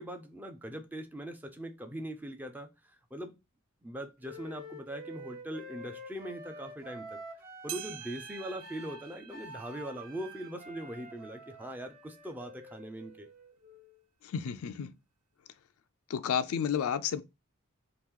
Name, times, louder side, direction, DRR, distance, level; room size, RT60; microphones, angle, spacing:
voice 1, 0.0-3.4 3.8-7.2 7.6-13.3, right 1 dB, 10° right, 0.4 m, -41 dB
Wind instrument woodwind instrument, 4.2-14.0, right 1 dB, 45° right, 0.8 m, -48 dB
sound 1, 7.7-12.3 12.8-12.9 13.7-13.8 14.8-14.9, right 11 dB, 80° right, 0.4 m, -48 dB
voice 2, 14.2-14.9 16.1-17.2, left 7 dB, 75° left, 0.3 m, -31 dB
3.0 x 2.4 x 3.6 m
head